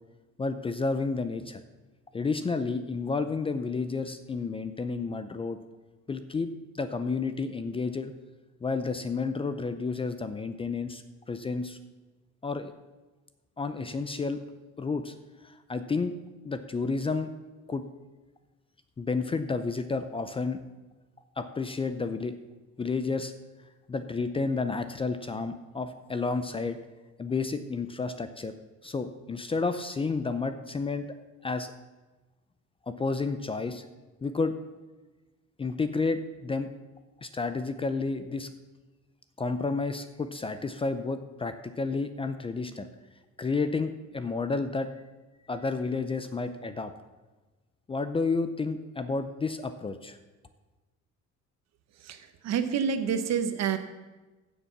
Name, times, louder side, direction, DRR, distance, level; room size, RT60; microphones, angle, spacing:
voice 1, 0.4-1.6 2.1-5.6 6.1-6.5 6.7-8.1 8.6-11.8 12.4-12.7 13.6-14.4 14.8-15.1 15.4-16.1 16.4-17.3 17.7-17.8 19.0-20.6 21.4-22.3 22.8-23.3 23.9-26.8 27.2-28.5 28.8-31.1 31.4-31.7 32.9-33.8 34.2-34.5 35.6-36.7 37.2-38.5 39.4-42.9 43.4-44.9 45.5-46.9 47.9-50.2, left 4 dB, 20° left, 10 dB, 0.5 m, -31 dB
voice 2, 52.0-53.8, right 7 dB, 60° right, 9 dB, 1.2 m, -28 dB
15.0 x 7.0 x 5.9 m, 1.2 s
cardioid pair, 150°, 30 cm